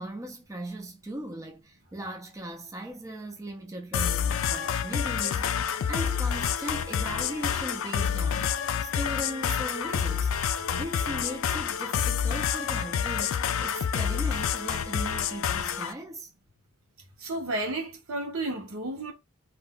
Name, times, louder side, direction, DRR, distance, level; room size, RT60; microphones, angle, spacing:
voice 1, 0.0-8.5 8.8-10.3 10.7-16.3, right 1 dB, 15° right, 0.4 m, -38 dB
sound 1, 3.9-15.9, left 8 dB, 65° left, 0.3 m, -28 dB
voice 2, 17.2-19.1, right 2 dB, 75° right, 0.8 m, -32 dB
2.4 x 2.1 x 3.6 m
head